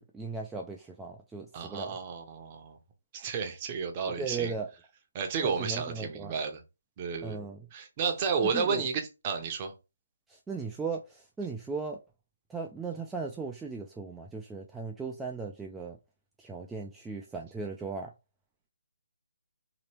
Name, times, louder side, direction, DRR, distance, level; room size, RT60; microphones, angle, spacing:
voice 1, 0.0-2.0 4.2-4.7 5.4-6.4 7.2-7.6 8.4-8.8 10.3-12.0 12.5-16.0 16.4-18.1, right 4 dB, 5° right, 0.3 m, -37 dB
voice 2, 1.5-2.8 3.1-4.5 5.1-6.6 7.0-7.4 7.7-9.7, right 6 dB, 30° right, 0.7 m, -32 dB
2.9 x 2.9 x 2.8 m
figure-of-eight pair, 145°, 0 cm